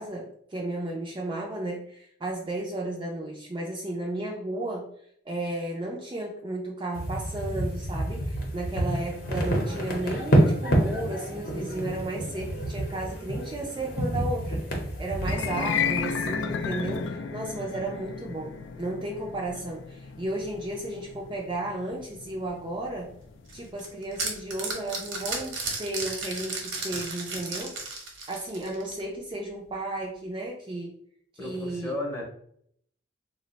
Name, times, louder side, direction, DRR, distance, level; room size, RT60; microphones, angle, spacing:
voice 1, 0.0-4.9 5.3-23.1 23.5-27.7 28.3-30.9 31.3-32.0, right 1 dB, 25° right, -1 dB, 0.4 m, -34 dB
sound 1, 6.9-15.3, right 1 dB, 50° left, 0.7 m, -28 dB
sound 2, 15.2-25.5, left 6 dB, 70° left, 0.3 m, -34 dB
sound 3, 23.5-29.0, right 3 dB, 80° right, 0.9 m, -34 dB
voice 2, 31.4-32.2, left 2 dB, 15° left, -2 dB, 0.7 m, -33 dB
2.5 x 2.1 x 3.9 m, 0.67 s
head